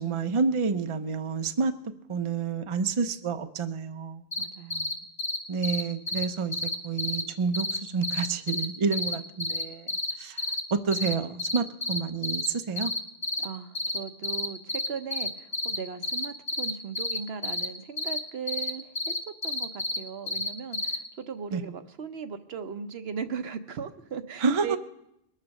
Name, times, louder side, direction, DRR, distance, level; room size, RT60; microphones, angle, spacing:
voice 1, 0.0-1.7 2.1-4.2 5.5-6.6 6.8-9.9 10.2-10.4 10.7-12.9 21.5-21.6 24.4-24.8, right 5 dB, 35° right, 8 dB, 0.6 m, -29 dB
sound 1, 4.3-4.4 4.7-4.9 5.2-5.4 5.6-5.8 6.1-6.2 6.5-7.2 7.5-7.8 8.0-8.7 8.9-10.1 10.4-10.6 10.9-11.1 11.4-12.5 12.8-13.5 13.7-14.0 14.2-15.8 16.0-17.7 18.0-18.2 18.5-18.7 19.0-20.0 20.3-21.0, left 2 dB, 30° left, 1.1 m, -29 dB
voice 2, 4.4-5.0 13.4-19.2 19.4-24.8, right 6 dB, 65° right, 9 dB, 1.0 m, -38 dB
21.5 x 7.4 x 6.4 m, 0.83 s
omnidirectional pair, 1.1 m